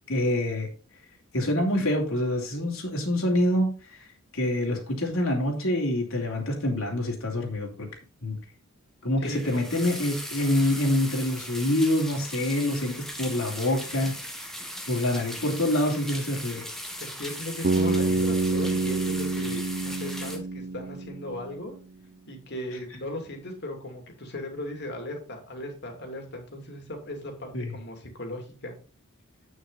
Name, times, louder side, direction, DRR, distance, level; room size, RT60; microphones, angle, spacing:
voice 1, 0.1-0.7 1.3-3.7 4.3-7.9 8.2-8.4 9.0-14.2 14.9-16.7 27.5-27.7, left 1 dB, 75° left, 0 dB, 3.0 m, -26 dB
voice 2, 9.2-9.8 17.0-21.8 22.3-28.8, left 1 dB, 50° left, 3 dB, 2.6 m, -37 dB
sound 1, 9.2-20.4, equal, ahead, 1.4 m, -38 dB
Bass guitar, 17.6-21.6, right 3 dB, 45° right, 0.6 m, -27 dB
8.9 x 6.5 x 4.0 m, 0.36 s
head